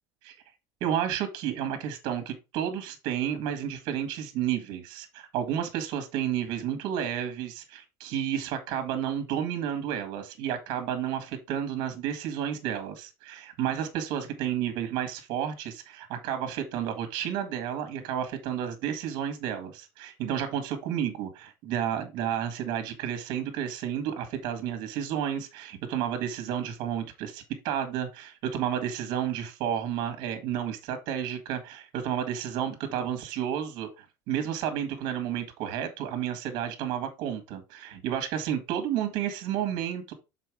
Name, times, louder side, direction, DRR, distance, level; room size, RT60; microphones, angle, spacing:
voice 1, 0.8-40.1, right 9 dB, 55° right, 1.7 m, -31 dB
6.8 x 4.3 x 4.8 m
cardioid pair, 180°, 9 cm